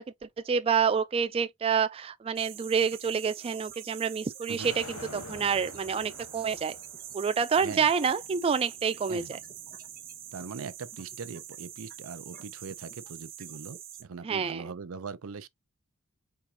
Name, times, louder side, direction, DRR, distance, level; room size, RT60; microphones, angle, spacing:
voice 1, 0.0-6.8 7.1-9.4 14.2-14.6, right 6 dB, 25° right, 0.3 m, -28 dB
sound 1, 2.4-14.0, right 10 dB, 45° right, 1.0 m, -45 dB
sound 2, 4.6-10.7, left 3 dB, 75° left, 1.3 m, -48 dB
voice 2, 7.6-7.9 9.1-9.3 10.3-15.5, right 5 dB, 80° right, 0.5 m, -41 dB
4.6 x 3.5 x 2.7 m
head